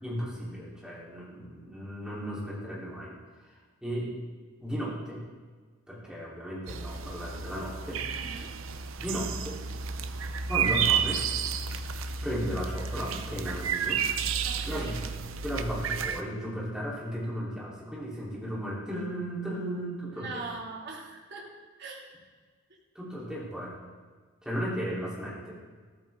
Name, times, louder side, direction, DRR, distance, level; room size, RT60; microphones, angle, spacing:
voice 1, 0.0-3.1 3.5-3.6 3.8-4.1 4.6-5.2 5.9-8.0 9.0-9.6 10.5-11.2 12.2-14.0 14.6-20.4 23.0-23.7 24.4-25.6, equal, 5° right, -6 dB, 3.7 m, -35 dB
sound 1, 6.7-16.2, right 7 dB, 80° right, 0.7 m, -31 dB
voice 2, 8.1-8.5 14.4-14.9 20.1-21.5 21.8-22.0, right 3 dB, 55° right, -2 dB, 2.6 m, -41 dB
14.0 x 13.5 x 3.7 m, 1.5 s
head